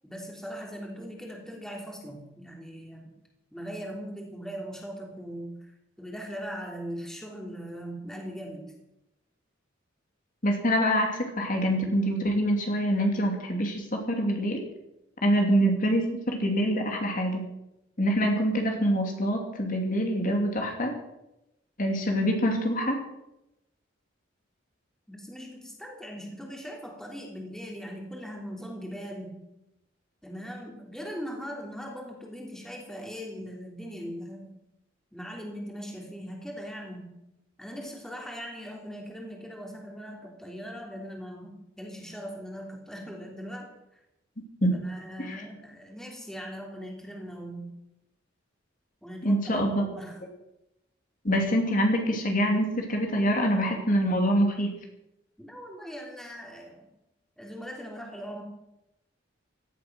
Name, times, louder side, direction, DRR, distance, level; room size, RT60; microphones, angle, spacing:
voice 1, 0.0-3.1 3.5-5.7 6.0-8.7 25.1-29.4 30.2-34.5 35.1-37.2 37.6-44.0 44.8-47.7 49.0-50.2 55.4-56.9 57.4-58.4, equal, 5° left, 0 dB, 3.3 m, -40 dB
voice 2, 10.4-14.6 15.2-17.5 18.0-20.9 21.8-23.0 44.6-44.8 45.2-45.4 49.2-49.9 51.2-54.7, equal, 45° left, 2 dB, 3.0 m, -25 dB
17.0 x 12.5 x 6.2 m, 0.88 s
head